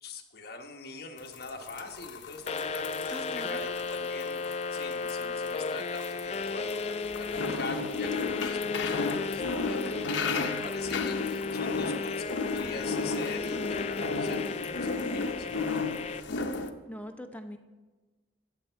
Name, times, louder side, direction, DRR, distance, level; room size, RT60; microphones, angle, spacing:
voice 1, 0.0-15.5, left 3 dB, 55° left, 3 dB, 1.1 m, -43 dB
sound 1, 1.2-16.7, left 4 dB, 70° left, 0.7 m, -34 dB
sound 2, 2.5-16.2, left 4 dB, 35° left, 0.3 m, -34 dB
voice 2, 3.1-3.7 16.9-17.6, left 1 dB, 10° left, 5 dB, 0.7 m, -42 dB
15.0 x 8.0 x 4.5 m, 1.3 s
head